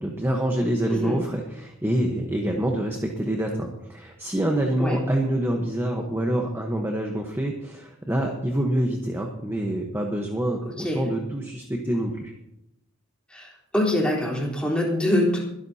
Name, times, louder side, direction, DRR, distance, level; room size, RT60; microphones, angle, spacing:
voice 1, 0.0-12.2, right 1 dB, 10° right, 1 dB, 1.1 m, -26 dB
voice 2, 0.9-1.2 4.8-5.0 10.6-11.1 13.3-15.4, left 1 dB, 5° left, -4 dB, 3.8 m, -24 dB
22.5 x 12.5 x 2.8 m, 0.85 s
head